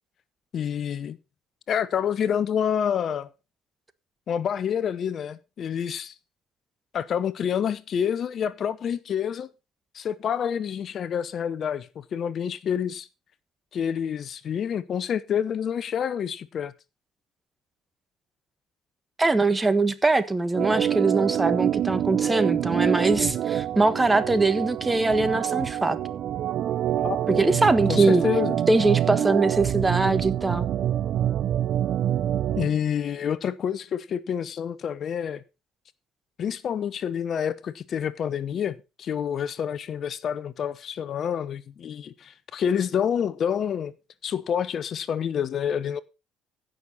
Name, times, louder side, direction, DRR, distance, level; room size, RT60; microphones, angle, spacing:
voice 1, 0.5-1.2 1.7-3.3 4.3-6.1 6.9-9.5 9.9-13.1 13.7-16.7 27.0-27.6 27.9-28.5 32.5-35.4 36.4-43.9 44.2-46.0, left 8 dB, 50° left, 0.7 m, -28 dB
voice 2, 19.2-26.0 27.4-28.2 28.7-30.7, right 3 dB, 15° right, 1.4 m, -22 dB
Organ, 20.5-32.7, right 11 dB, 60° right, 0.6 m, -26 dB
16.0 x 6.3 x 4.1 m
hypercardioid pair, 65°, 0 cm